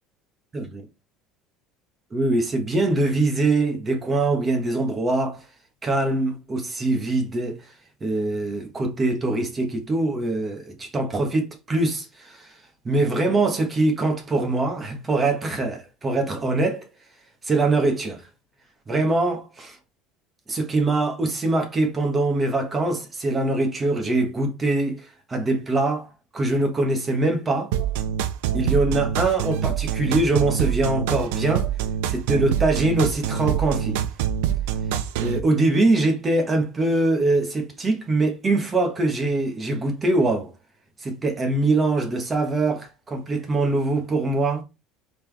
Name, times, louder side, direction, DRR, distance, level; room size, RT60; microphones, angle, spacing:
voice 1, 2.1-5.4 5.8-7.7 8.0-12.5 12.8-16.9 17.4-18.2 18.9-19.8 20.5-27.7 28.5-31.7 32.1-34.0 35.2-40.5 41.0-44.6, right 2 dB, 20° right, 1.4 m, -23 dB
sound 1, 27.7-35.4, right 9 dB, 85° right, 0.6 m, -25 dB
4.3 x 3.7 x 3.4 m
cardioid pair, 130°, 0 cm